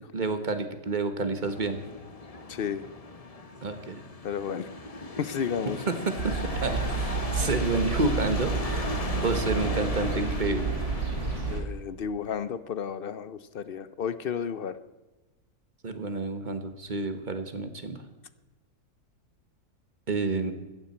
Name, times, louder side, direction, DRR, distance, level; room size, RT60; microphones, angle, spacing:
voice 1, 0.1-1.8 3.6-4.0 5.9-8.9 9.2-10.7 15.8-18.0 20.1-20.5, right 3 dB, 35° right, 8 dB, 1.4 m, -29 dB
sound 1, 1.4-11.6, left 3 dB, 30° left, 0.9 m, -37 dB
voice 2, 2.5-2.9 4.2-4.7 5.2-5.8 11.5-14.8, left 7 dB, 55° left, 14 dB, 0.6 m, -32 dB
sound 2, 6.2-11.6, right 5 dB, 80° right, 2.8 m, -30 dB
15.0 x 14.5 x 4.4 m, 1.1 s
omnidirectional pair, 1.6 m